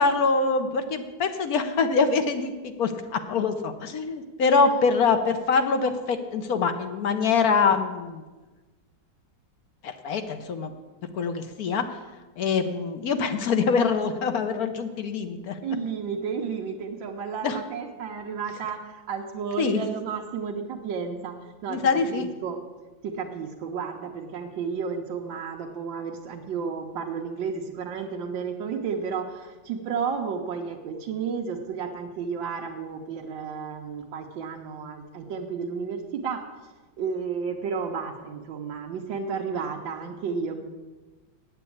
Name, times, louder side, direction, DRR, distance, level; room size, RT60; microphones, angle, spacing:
voice 1, 0.0-8.2 9.8-10.7 11.1-12.0 12.4-15.6 17.4-17.6 19.6-19.8 21.7-22.3, left 4 dB, 60° left, 8 dB, 1.1 m, -24 dB
voice 2, 15.6-22.6 23.0-40.6, right 6 dB, 80° right, 0 dB, 1.6 m, -32 dB
8.7 x 8.2 x 8.5 m, 1.2 s
omnidirectional pair, 2.0 m